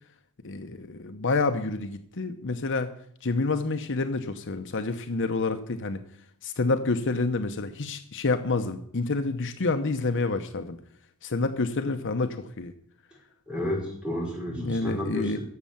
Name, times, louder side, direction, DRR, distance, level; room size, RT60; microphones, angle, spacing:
voice 1, 0.4-2.9 3.2-6.0 6.4-10.8 11.2-12.7 14.5-15.4, left 3 dB, 55° left, 8 dB, 0.8 m, -28 dB
voice 2, 13.5-15.4, left 1 dB, 5° right, -2 dB, 5.6 m, -31 dB
15.5 x 7.5 x 7.3 m, 0.68 s
head